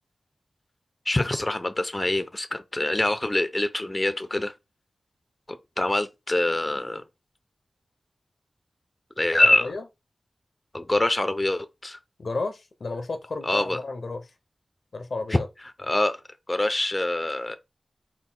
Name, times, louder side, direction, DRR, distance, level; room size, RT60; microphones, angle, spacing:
voice 1, 1.1-4.5 5.8-7.0 9.2-9.7 10.7-12.0 13.4-13.8 15.3-15.4 15.8-16.2 16.5-17.6, left 1 dB, 25° left, 0.5 m, -24 dB
voice 2, 12.2-14.3 14.9-15.5, left 3 dB, 70° left, 0.7 m, -32 dB
4.6 x 3.9 x 2.2 m
wide cardioid pair, 70°, 0 cm